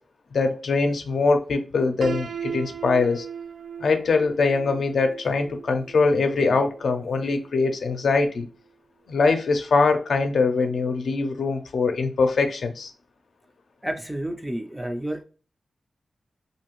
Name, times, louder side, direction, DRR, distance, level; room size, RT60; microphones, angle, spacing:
voice 1, 0.3-3.3 3.8-8.5 9.1-12.9, left 4 dB, 80° left, 0.5 m, -22 dB
Piano, 2.0-7.9, right 7 dB, 85° right, 0.4 m, -37 dB
voice 2, 13.8-15.2, right 1 dB, 5° right, 0.4 m, -30 dB
2.6 x 2.5 x 3.0 m
wide cardioid pair, 150°, 0 cm